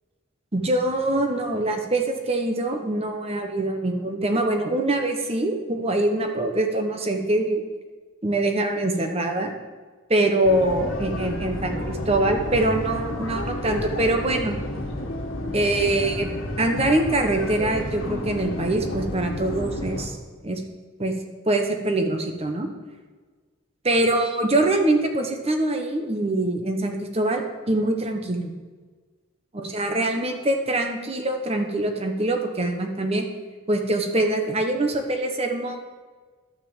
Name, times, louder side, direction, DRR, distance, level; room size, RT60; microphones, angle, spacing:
voice 1, 0.5-7.6 8.2-9.5 10.1-14.6 15.5-16.3 16.6-20.2 20.4-20.6 21.0-21.1 21.5-22.7 23.8-28.5 29.5-33.3 33.7-35.8, right 2 dB, 30° right, 4 dB, 1.2 m, -24 dB
sound 1, 10.4-20.1, left 1 dB, 85° left, 1.8 m, -31 dB
12.0 x 6.3 x 7.1 m, 1.4 s
head